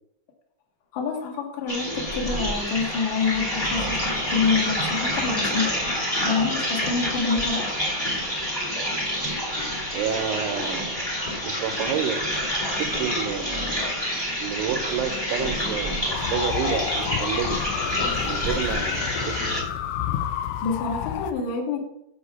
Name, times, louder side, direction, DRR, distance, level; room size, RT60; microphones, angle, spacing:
voice 1, 0.9-5.7 6.2-7.7 20.6-21.8, left 5 dB, 55° left, 0 dB, 2.2 m, -27 dB
sound 1, 1.7-19.6, equal, 15° left, 1.1 m, -28 dB
voice 2, 9.9-11.0 11.4-12.3 12.8-13.6 14.4-17.6 18.2-19.5, right 8 dB, 85° right, 7 dB, 3.3 m, -29 dB
sound 2, 16.1-21.3, left 10 dB, 85° left, 3.1 m, -30 dB
7.9 x 5.2 x 7.0 m, 0.81 s
omnidirectional pair, 5.4 m